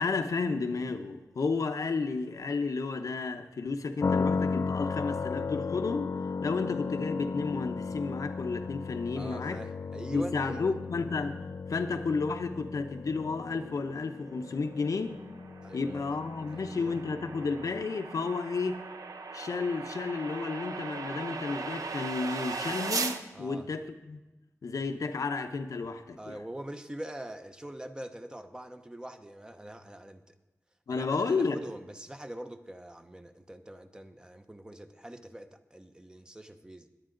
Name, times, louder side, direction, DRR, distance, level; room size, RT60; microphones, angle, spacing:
voice 1, 0.0-6.1 6.4-9.6 10.1-11.4 11.7-15.2 15.7-18.8 19.3-24.2 24.6-26.4 30.9-31.6, left 4 dB, 80° left, 6 dB, 0.9 m, -32 dB
sound 1, 4.0-17.9, left 4 dB, 55° left, 0.3 m, -35 dB
voice 2, 9.2-10.8 15.6-16.1 16.5-17.0 23.3-23.7 26.2-30.2 30.9-36.9, right 1 dB, 15° right, 7 dB, 0.8 m, -43 dB
sound 2, 14.5-23.2, right 4 dB, 80° right, 0.8 m, -38 dB
20.5 x 8.9 x 3.9 m, 1.1 s
wide cardioid pair, 110°, 6 cm